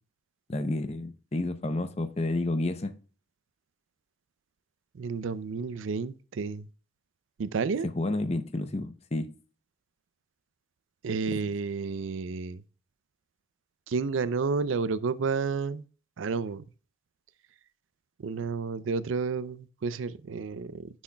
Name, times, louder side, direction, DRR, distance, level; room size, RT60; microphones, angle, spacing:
voice 1, 0.5-2.9 7.8-9.3 11.3-11.4, left 2 dB, 30° left, 0.6 m, -30 dB
voice 2, 5.0-6.7 7.4-7.9 11.0-12.6 13.9-15.8 16.2-16.6 18.2-21.0, right 4 dB, 75° right, 0.4 m, -31 dB
9.6 x 6.2 x 2.2 m
head